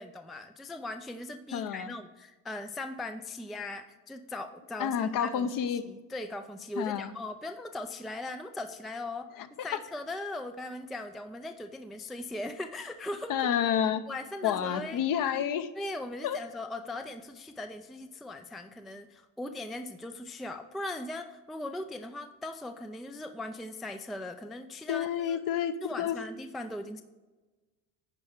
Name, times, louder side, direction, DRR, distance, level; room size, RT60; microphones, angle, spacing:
voice 1, 0.0-5.5 5.9-9.3 9.6-13.5 14.1-15.0 15.3-15.4 15.8-25.4 25.8-27.0, left 2 dB, ahead, 8 dB, 0.4 m, -39 dB
voice 2, 1.5-1.9 4.8-5.8 6.8-7.1 9.4-9.7 13.3-14.0 14.4-15.7 16.2-16.4 24.9-26.2, left 9 dB, 50° left, 11 dB, 0.8 m, -29 dB
9.9 x 4.8 x 6.6 m, 1.2 s
supercardioid pair, 95°, 43 cm